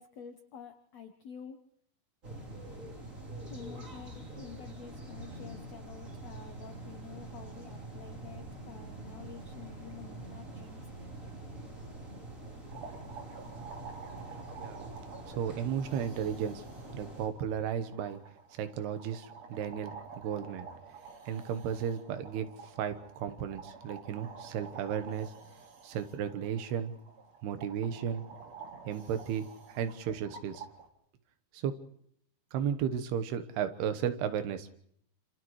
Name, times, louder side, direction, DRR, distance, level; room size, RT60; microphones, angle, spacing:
voice 1, 0.0-1.6 3.5-10.8, left 6 dB, 75° left, 5 dB, 1.5 m, -49 dB
sound 1, 2.2-17.3, right 1 dB, 20° right, 3.6 m, -45 dB
sound 2, 12.7-30.9, right 5 dB, 50° right, 2.7 m, -50 dB
voice 2, 14.6-14.9 15.3-16.6 16.9-18.2 18.5-20.7 21.3-22.5 22.8-25.3 25.8-26.9 27.4-28.3 28.9-30.6 31.5-31.7 32.5-34.7, right 8 dB, 85° right, 9 dB, 3.2 m, -34 dB
29.0 x 28.0 x 3.2 m, 0.67 s
omnidirectional pair, 4.6 m